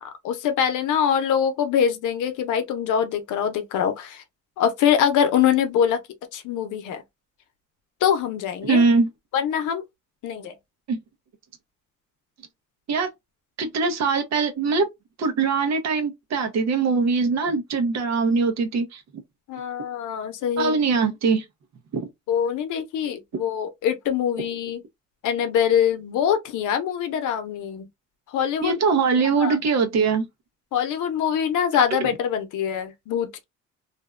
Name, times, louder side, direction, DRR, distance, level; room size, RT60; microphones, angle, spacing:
voice 1, 0.0-4.2 4.6-6.0 6.3-7.0 8.0-8.8 9.3-9.8 10.2-10.6 19.5-20.8 22.3-24.8 25.2-27.9 28.3-28.8 29.4-29.6 30.7-33.4, left 8 dB, 80° left, 0.6 m, -24 dB
voice 2, 8.6-9.1 10.9-11.0 12.9-13.1 13.6-14.9 15.2-19.0 20.6-21.4 21.9-22.1 28.6-30.3, right 4 dB, 60° right, 0.8 m, -22 dB
2.6 x 2.1 x 2.3 m
cardioid pair, 90°, 30 cm